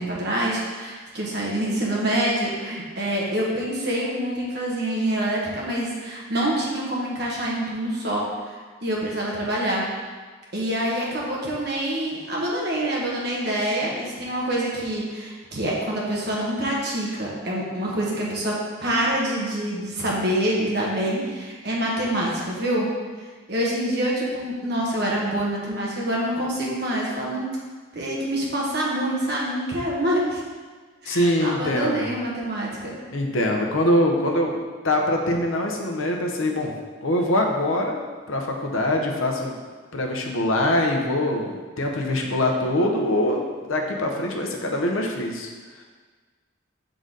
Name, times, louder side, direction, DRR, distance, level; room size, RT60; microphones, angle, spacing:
voice 1, 0.0-9.9 10.5-22.9 23.5-27.5 27.9-30.4 31.0-32.9, right 1 dB, 50° right, -4 dB, 1.3 m, -26 dB
voice 2, 31.1-32.1 33.1-34.5 34.8-36.7 37.0-38.0 38.3-39.5 39.9-45.5, left 1 dB, 80° left, 1 dB, 0.8 m, -23 dB
6.5 x 3.9 x 3.9 m, 1.5 s
head